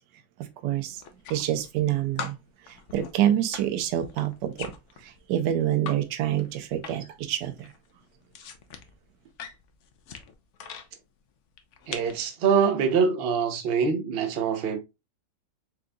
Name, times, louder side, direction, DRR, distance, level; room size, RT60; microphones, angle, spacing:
voice 1, 0.4-1.0 1.3-2.4 2.7-4.7 5.0-7.7, right 11 dB, 85° right, 1.2 m, -27 dB
sound 1, 1.0-1.9 2.2-6.0 6.3-7.2 7.5-10.9 11.5-12.2, left 6 dB, 60° left, 0.8 m, -41 dB
voice 2, 11.9-14.8, right 6 dB, 50° right, 0.7 m, -24 dB
4.6 x 3.8 x 2.2 m
omnidirectional pair, 1.8 m